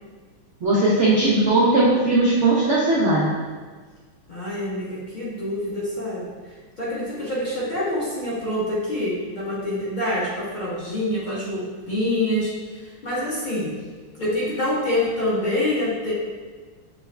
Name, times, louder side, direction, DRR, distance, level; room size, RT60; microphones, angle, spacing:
voice 1, 0.6-3.3, right 2 dB, 90° right, -6 dB, 0.6 m, -18 dB
voice 2, 4.3-13.7 14.2-16.1, left 1 dB, 40° left, -8 dB, 0.6 m, -26 dB
6.5 x 2.3 x 3.2 m, 1.4 s
omnidirectional pair, 2.2 m